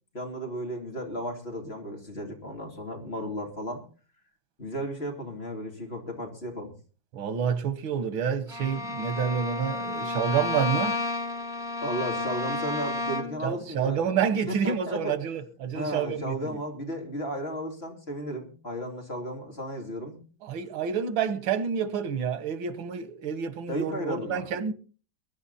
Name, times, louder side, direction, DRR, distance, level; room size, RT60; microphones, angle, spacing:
voice 1, 0.1-3.8 4.6-6.7 11.8-14.1 14.5-15.1 15.7-20.2 23.7-24.5, equal, 30° left, 3.4 m, -34 dB
voice 2, 7.1-11.0 13.4-16.6 20.4-24.7, right 7 dB, 90° right, 2.0 m, -28 dB
Bowed string instrument, 8.5-13.5, left 2 dB, ahead, 1.7 m, -31 dB
22.0 x 10.0 x 4.2 m
omnidirectional pair, 2.1 m